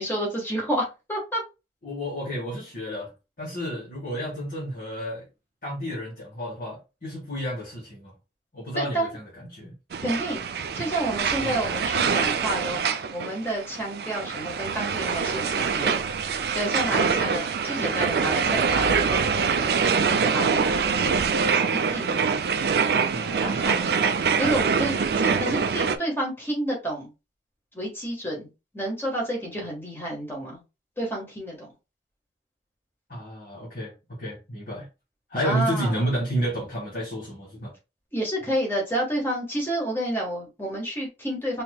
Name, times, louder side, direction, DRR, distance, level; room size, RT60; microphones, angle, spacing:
voice 1, 0.0-1.4 8.7-9.2 10.0-10.4 10.7-22.2 23.4-24.0 24.4-27.1 27.7-28.5 28.7-30.6 31.0-31.7 35.4-36.0 38.1-41.6, right 1 dB, 10° left, 1.4 m, -30 dB
voice 2, 1.8-3.1 3.4-5.3 5.6-8.1 8.5-9.2 9.5-9.7 11.4-11.5 23.1-23.6 33.1-33.9 34.2-34.9 35.3-37.7, equal, 50° left, 1.8 m, -31 dB
sound 1, 9.9-26.0, right 5 dB, 60° right, 0.4 m, -24 dB
4.3 x 2.9 x 2.3 m
head